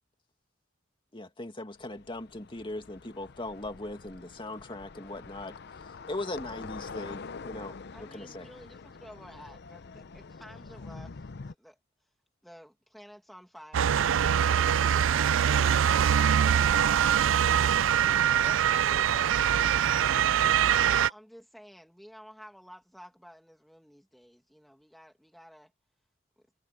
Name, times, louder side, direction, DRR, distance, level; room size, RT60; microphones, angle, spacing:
voice 1, 1.1-8.5, left 2 dB, 25° left, 2.3 m, -39 dB
sound 1, 1.7-11.5, left 4 dB, 60° left, 0.6 m, -45 dB
voice 2, 7.9-12.1 12.4-17.1 18.2-18.6 20.4-25.7, equal, ahead, 2.0 m, -52 dB
Motor vehicle (road) / Siren, 13.7-21.1, right 9 dB, 85° right, 0.4 m, -23 dB
voice 3, 18.4-20.5, right 4 dB, 40° right, 5.1 m, -47 dB
head